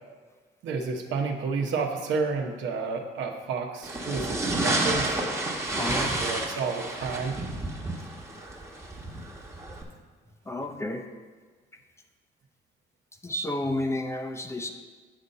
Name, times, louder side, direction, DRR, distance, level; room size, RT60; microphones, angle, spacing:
voice 1, 0.6-5.2 5.9-7.4, right 4 dB, 75° right, 3 dB, 1.0 m, -30 dB
sound 1, 3.8-9.8, right 2 dB, 15° right, 1.1 m, -30 dB
voice 2, 5.8-6.2 10.5-11.0 13.2-14.7, left 1 dB, 15° left, 5 dB, 0.7 m, -31 dB
8.3 x 4.2 x 6.6 m, 1.4 s
cardioid pair, 115°, 19 cm